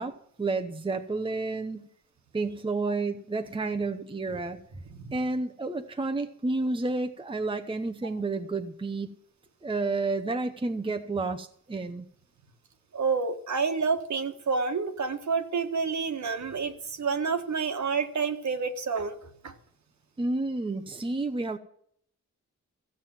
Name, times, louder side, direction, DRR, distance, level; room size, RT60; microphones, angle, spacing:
voice 1, 0.0-1.9 2.3-4.6 5.1-9.1 9.6-12.1 20.2-21.6, right 3 dB, 15° right, 7 dB, 0.8 m, -30 dB
voice 2, 12.9-19.5, right 5 dB, 60° right, 6 dB, 1.6 m, -29 dB
15.5 x 7.5 x 7.3 m, 0.66 s
wide cardioid pair, 120°, 32 cm